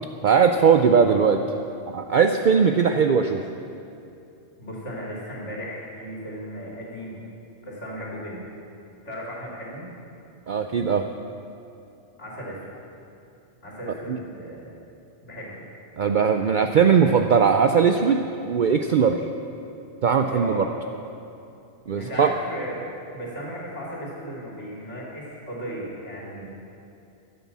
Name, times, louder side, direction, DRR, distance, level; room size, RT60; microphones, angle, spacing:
voice 1, 0.2-1.4 1.9-3.4 10.5-11.1 14.1-14.2 16.0-19.3 20.0-20.7 21.9-22.3, right 6 dB, 55° right, 6 dB, 0.6 m, -19 dB
voice 2, 4.6-7.2 7.6-8.5 9.1-9.9 12.2-12.6 13.6-14.6 15.2-15.6 20.3-20.7 21.9-22.8 23.1-26.5, equal, 85° left, -5 dB, 3.5 m, -35 dB
15.0 x 9.5 x 7.3 m, 2.6 s
omnidirectional pair, 1.2 m